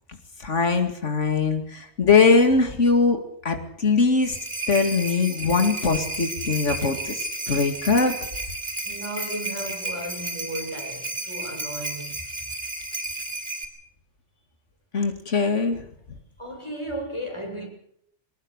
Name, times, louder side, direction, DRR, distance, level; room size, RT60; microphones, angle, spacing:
voice 1, 0.4-3.2 3.4-4.4 4.7-8.1 14.9-15.8, left 4 dB, 90° left, 2.7 m, -21 dB
sound 1, 4.0-13.6, right 2 dB, 25° right, 5.0 m, -33 dB
voice 2, 8.8-12.2 16.4-17.7, right 1 dB, 25° left, 7.0 m, -35 dB
23.5 x 20.5 x 6.6 m
omnidirectional pair, 1.2 m